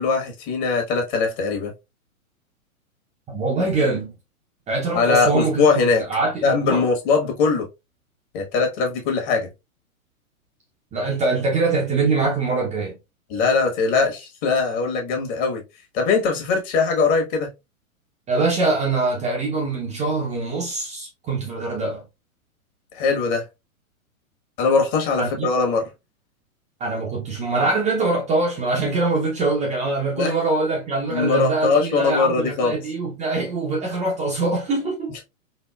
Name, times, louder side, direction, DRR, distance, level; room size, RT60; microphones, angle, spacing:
voice 1, 0.0-1.7 4.9-6.0 6.4-7.7 8.3-9.5 13.3-15.6 15.9-17.5 22.9-23.4 24.6-25.9 30.1-30.4 31.1-32.7, left 4 dB, 35° left, 1.4 m, -21 dB
voice 2, 3.3-4.1 4.7-5.8 6.1-6.9 10.9-13.0 18.3-22.0 25.2-25.5 26.8-35.2, right 3 dB, 15° right, 0.7 m, -23 dB
4.2 x 2.6 x 2.3 m
hypercardioid pair, 120°, 43 cm